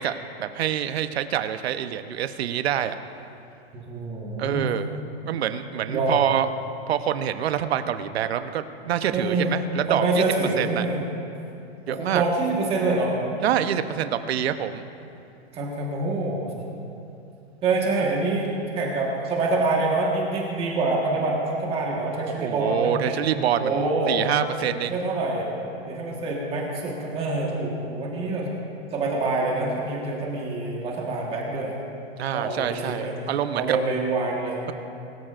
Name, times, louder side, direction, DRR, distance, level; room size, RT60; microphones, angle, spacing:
voice 1, 0.0-3.0 4.4-5.0 5.2-6.5 6.9-10.2 10.6-10.9 11.9-12.2 13.4-14.8 22.4-25.0 32.2-33.8, right 10 dB, 75° right, 10 dB, 0.9 m, -26 dB
voice 2, 3.7-4.7 5.9-6.2 9.1-9.6 9.9-11.0 11.9-13.3 15.5-16.5 17.6-18.5 18.7-23.2 23.6-24.2 24.6-25.5 25.9-28.5 28.9-31.7 32.3-33.1 33.5-34.6, right 3 dB, 20° right, -2 dB, 1.4 m, -26 dB
21.5 x 14.0 x 2.5 m, 2.7 s
supercardioid pair, 165°, 32 cm